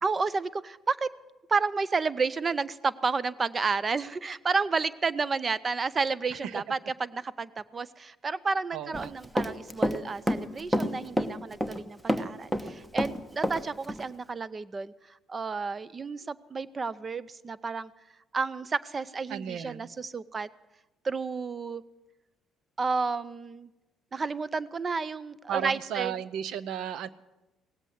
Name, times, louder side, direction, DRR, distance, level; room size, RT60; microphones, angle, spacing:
voice 1, 0.0-1.1 1.5-14.9 15.3-17.9 18.3-20.5 21.0-21.8 22.8-23.7 24.1-26.1, right 4 dB, 35° right, 19 dB, 0.6 m, -31 dB
voice 2, 8.7-9.1 19.3-19.9 25.5-27.1, right 10 dB, 75° right, 18 dB, 0.6 m, -34 dB
Run, 8.9-10.0 10.3-11.8 12.1-13.6 13.9-14.0, equal, 10° right, 1.0 m, -28 dB
18.0 x 8.1 x 9.4 m, 1.0 s
cardioid pair, 90°, 0 cm